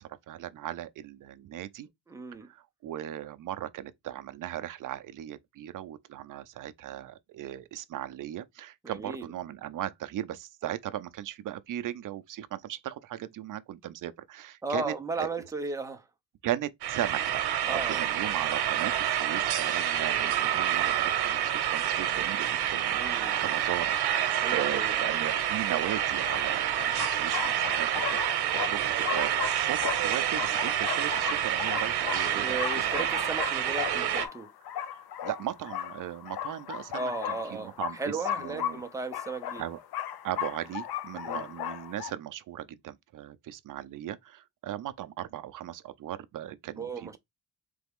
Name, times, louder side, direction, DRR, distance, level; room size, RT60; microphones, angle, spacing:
voice 1, 0.0-1.9 2.5-15.3 16.4-32.6 32.8-33.1 34.9-37.1 37.5-38.8 39.6-39.8 40.2-47.2, right 12 dB, 55° right, 0.5 m, -37 dB
voice 2, 2.1-2.5 8.8-9.3 14.6-16.0 17.6-18.0 22.9-23.4 24.3-25.2 32.2-34.5 36.9-39.6 41.2-41.5 46.8-47.2, right 3 dB, 10° right, 0.5 m, -35 dB
sound 1, 16.8-34.3, right 10 dB, 85° right, 0.9 m, -28 dB
sound 2, 25.5-25.6 26.3-42.1, left 10 dB, 70° left, 0.6 m, -36 dB
4.0 x 3.4 x 3.5 m
cardioid pair, 170°, 38 cm